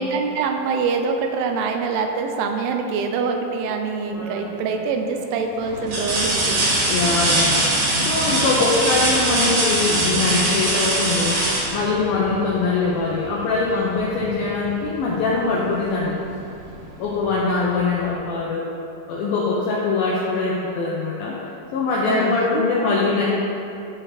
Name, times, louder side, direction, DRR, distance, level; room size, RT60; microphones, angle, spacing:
voice 1, 0.0-6.7 22.1-23.0, right 4 dB, 85° right, 4 dB, 3.2 m, -25 dB
sound 1, 4.1-4.6 5.2-5.3 5.9-12.6 14.3-14.5 14.9-16.0 17.3-17.4, right 1 dB, 55° right, 3.1 m, -22 dB
sound 2, 5.6-18.1, right 1 dB, 70° right, 3.7 m, -35 dB
voice 2, 6.8-7.8 8.1-11.4 11.7-16.2 17.0-18.7 19.1-21.4 21.7-23.2, left 3 dB, 90° left, -5 dB, 2.0 m, -22 dB
13.5 x 5.0 x 4.3 m, 2.7 s
omnidirectional pair, 5.4 m